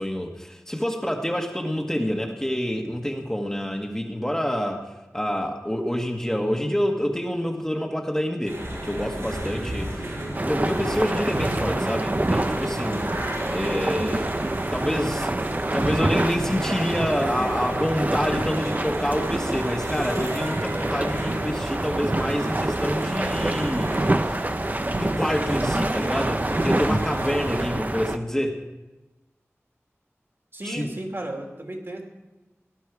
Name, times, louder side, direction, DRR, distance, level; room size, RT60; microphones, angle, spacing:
voice 1, 0.0-10.0 10.4-13.2 13.5-14.3 14.7-15.3 15.7-24.4 24.9-28.6 30.6-30.9, equal, 10° left, 2 dB, 1.6 m, -27 dB
sound 1, 8.4-27.7, right 1 dB, 75° right, 5.9 m, -33 dB
sound 2, 10.3-28.2, right 1 dB, 35° right, 0.8 m, -27 dB
voice 2, 30.5-32.0, right 1 dB, 55° right, 1 dB, 3.0 m, -34 dB
18.5 x 11.5 x 4.8 m, 1.1 s
wide cardioid pair, 60°, 5 cm